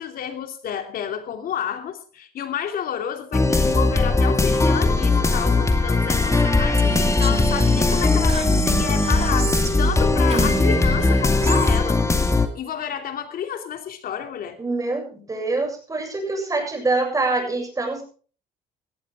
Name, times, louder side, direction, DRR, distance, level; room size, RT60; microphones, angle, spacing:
voice 1, 0.0-12.0 12.5-14.6, left 9 dB, 60° left, 6 dB, 2.9 m, -30 dB
sound 1, 3.3-12.5, left 3 dB, 15° left, 2.3 m, -19 dB
Female speech woman speaking, 6.8-10.0 10.3-11.8, right 6 dB, 35° right, 1.6 m, -30 dB
voice 2, 14.6-18.0, right 3 dB, 20° right, 3 dB, 7.4 m, -25 dB
18.5 x 14.0 x 3.7 m, 0.39 s
cardioid pair, 110°, 17 cm